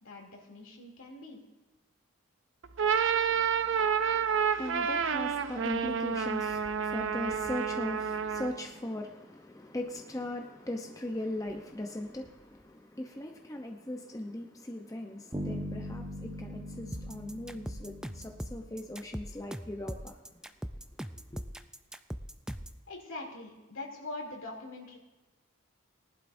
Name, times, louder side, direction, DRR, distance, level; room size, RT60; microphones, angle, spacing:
voice 1, 0.0-1.4 22.9-25.0, left 2 dB, 80° left, 2.8 m, -43 dB
sound 1, 2.6-8.7, right 7 dB, 65° right, 0.6 m, -29 dB
voice 2, 3.3-20.4 21.3-21.4, left 1 dB, 15° left, 0.7 m, -39 dB
Bass guitar, 15.3-19.1, equal, 20° right, 1.2 m, -40 dB
sound 2, 16.9-22.8, equal, 5° right, 0.3 m, -40 dB
18.5 x 11.5 x 2.6 m
head